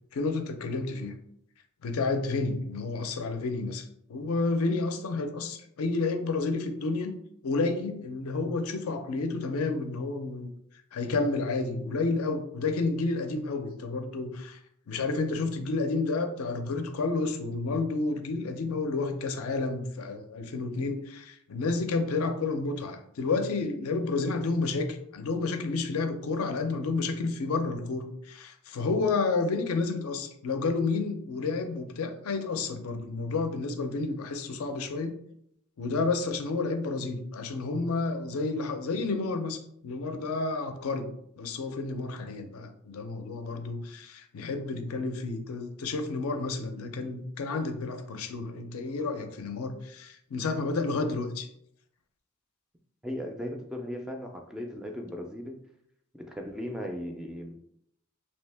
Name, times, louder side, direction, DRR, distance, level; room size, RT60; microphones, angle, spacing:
voice 1, 0.1-1.1 1.8-3.8 4.1-7.1 7.4-10.5 10.9-14.6 14.9-35.1 35.8-51.5, left 3 dB, 75° left, 6 dB, 0.5 m, -30 dB
voice 2, 53.0-55.6 56.1-57.5, equal, 5° right, 2 dB, 0.3 m, -37 dB
2.9 x 2.7 x 3.3 m, 0.73 s
head